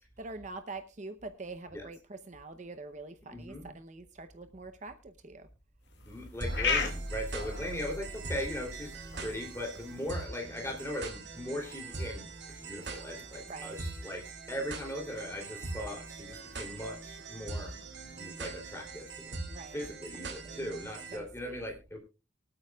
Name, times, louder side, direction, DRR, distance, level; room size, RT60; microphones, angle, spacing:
voice 1, 0.2-5.5 13.5-13.8 19.5-19.8 20.4-20.6 21.1-21.6, right 3 dB, 35° right, 9 dB, 0.7 m, -45 dB
voice 2, 3.3-3.7 6.1-12.3 12.6-17.8 18.1-19.3 19.7-22.0, equal, 15° left, 1 dB, 3.0 m, -39 dB
sound 1, 5.8-19.9, left 5 dB, 60° left, 2.1 m, -42 dB
sound 2, 6.4-21.2, right 2 dB, 60° right, 2.6 m, -41 dB
24.0 x 8.7 x 2.3 m, 0.28 s
head